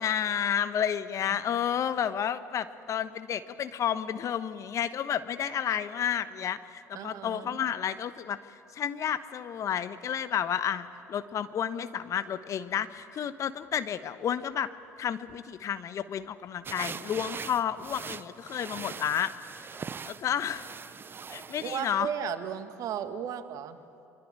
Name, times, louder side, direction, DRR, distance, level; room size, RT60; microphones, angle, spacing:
voice 1, 0.0-14.7 15.0-19.3 20.1-20.7 21.3-22.1, left 9 dB, 45° left, 12 dB, 1.2 m, -31 dB
voice 2, 6.9-7.6 21.6-23.8, right 8 dB, 50° right, 9 dB, 1.8 m, -35 dB
sound 1, 16.6-22.0, right 6 dB, 30° right, 0.9 m, -41 dB
24.5 x 24.0 x 9.0 m, 2.5 s
hypercardioid pair, 60°, 7 cm